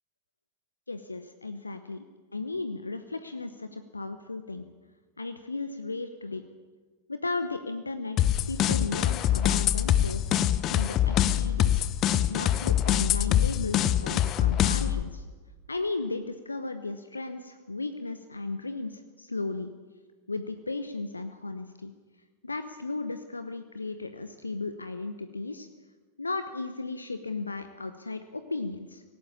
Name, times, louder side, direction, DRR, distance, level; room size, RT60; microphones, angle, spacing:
voice 1, 0.9-2.0 2.3-4.7 5.2-6.4 7.1-10.3 10.7-11.9 12.3-15.2 15.7-19.7 20.3-21.9 22.4-25.7 26.2-29.0, left 3 dB, 80° left, 9 dB, 0.9 m, -35 dB
sound 1, 8.2-15.0, left 11 dB, 35° left, 0.9 m, -24 dB
18.5 x 17.5 x 8.6 m, 1.4 s
figure-of-eight pair, 90°, 0 cm